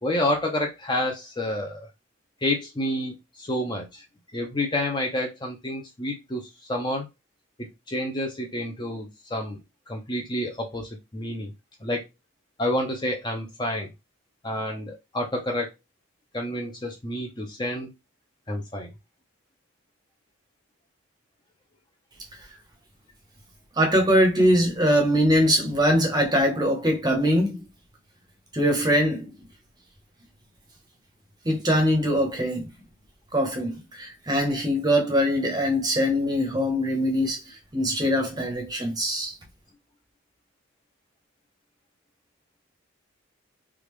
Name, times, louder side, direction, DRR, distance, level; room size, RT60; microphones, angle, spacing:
voice 1, 0.0-1.9 2.4-4.0 4.3-6.4 6.7-7.1 7.6-9.6 9.9-11.5 11.8-12.0 12.6-13.9 14.4-15.7 16.3-17.9 18.5-18.9, left 1 dB, 20° left, 0.7 m, -29 dB
voice 2, 23.8-27.6 28.5-29.3 31.4-32.6 33.3-37.4 37.7-39.3, equal, 20° right, 0.8 m, -22 dB
3.5 x 2.5 x 3.1 m
head